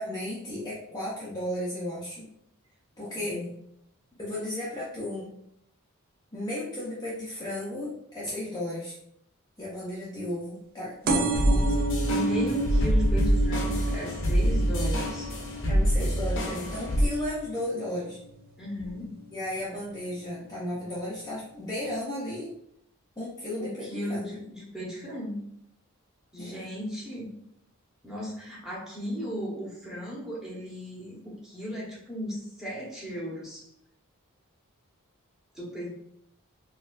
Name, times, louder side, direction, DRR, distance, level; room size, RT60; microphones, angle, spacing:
voice 1, 0.0-2.3 3.0-3.4 4.2-5.3 6.3-9.0 9.6-11.7 15.7-18.2 19.3-22.5 23.2-24.4 26.4-26.7, left 1 dB, 15° left, -8 dB, 0.6 m, -34 dB
sound 1, 11.1-18.3 18.8-19.2 20.1-20.2 20.4-20.5 20.7-20.8, right 2 dB, 40° right, 0.3 m, -32 dB
sound 2, 11.3-17.1, equal, 55° left, 0.7 m, -25 dB
voice 2, 12.1-15.3 18.6-19.2 23.6-25.4 26.3-27.3 28.0-33.7 35.5-35.9, equal, 5° right, -6 dB, 1.0 m, -35 dB
4.1 x 2.3 x 2.4 m, 0.73 s
head